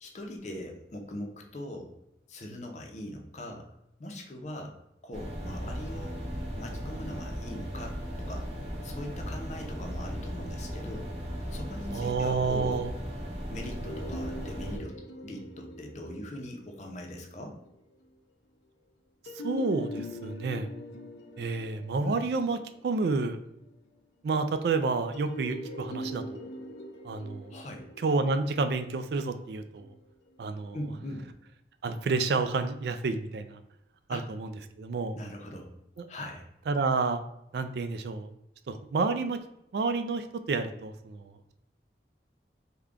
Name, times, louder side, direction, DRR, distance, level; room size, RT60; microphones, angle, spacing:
voice 1, 0.0-1.9 2.3-3.7 4.0-4.7 5.0-6.2 6.6-8.5 8.8-11.1 11.5-12.9 13.5-15.0 15.2-17.6 22.0-22.2 27.5-27.8 30.7-31.3 34.1-34.2 35.1-35.7 36.1-36.5, left 1 dB, 40° left, 2 dB, 0.6 m, -41 dB
sound 1, 5.1-14.8, equal, 35° right, 0.8 m, -37 dB
voice 2, 11.9-12.9 19.4-20.7 21.4-22.6 22.8-23.4 24.2-26.5 27.0-27.5 28.0-29.9 30.4-30.8 31.8-33.6 34.1-34.5 34.8-35.2 36.0-36.1 36.7-37.2 37.5-38.3 38.7-39.4 39.7-41.5, right 4 dB, 65° right, 9 dB, 0.3 m, -29 dB
sound 2, 13.8-17.7 19.3-23.7 25.1-30.3, left 1 dB, 85° left, 0.5 m, -43 dB
3.5 x 2.2 x 3.6 m, 0.81 s
head